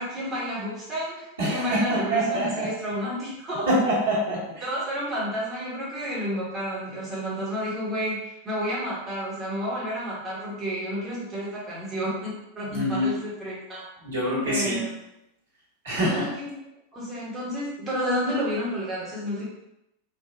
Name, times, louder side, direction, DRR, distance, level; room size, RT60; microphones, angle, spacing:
voice 1, 0.0-3.7 4.6-13.8 14.4-14.9 16.0-16.5 16.9-19.5, equal, 20° right, -7 dB, 0.9 m, -30 dB
voice 2, 1.4-2.7 3.7-4.7 12.7-13.1 14.0-14.8 15.8-16.3, equal, 65° right, -7 dB, 1.2 m, -25 dB
3.3 x 2.1 x 2.5 m, 0.86 s
figure-of-eight pair, 90°, 0 cm